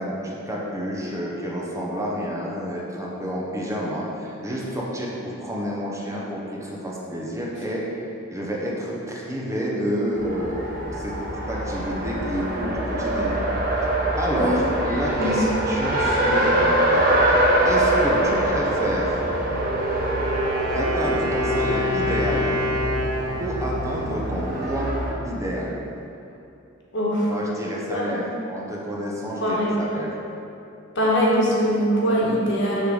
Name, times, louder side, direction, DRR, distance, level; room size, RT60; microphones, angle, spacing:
voice 1, 0.0-7.8 8.3-13.4 14.2-19.2 20.7-22.5 23.4-24.9 25.2-25.8 27.3-28.2 28.5-30.1, equal, 15° right, -4 dB, 0.8 m, -29 dB
Race car auto racing, 10.1-25.1, right 1 dB, 45° right, 1.1 m, -24 dB
Wind instrument woodwind instrument, 19.4-25.1, equal, 80° right, 1.5 m, -28 dB
voice 2, 26.9-27.3 27.9-28.3 29.4-29.8 30.9-32.9, equal, 60° left, -4 dB, 1.5 m, -22 dB
6.3 x 3.9 x 6.3 m, 2.7 s
head